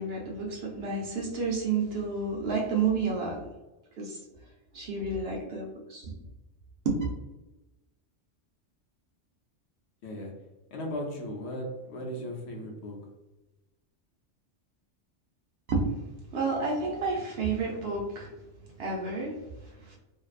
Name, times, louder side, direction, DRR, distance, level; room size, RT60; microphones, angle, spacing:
voice 1, 0.0-3.4 4.0-4.2 4.7-6.1 6.9-7.0 15.7-16.0 16.3-18.3 18.8-19.4 19.9-20.0, right 4 dB, 65° right, 0 dB, 0.7 m, -30 dB
voice 2, 10.7-13.0, equal, 65° left, 0 dB, 0.9 m, -36 dB
2.6 x 2.2 x 2.4 m, 1.1 s
omnidirectional pair, 1.3 m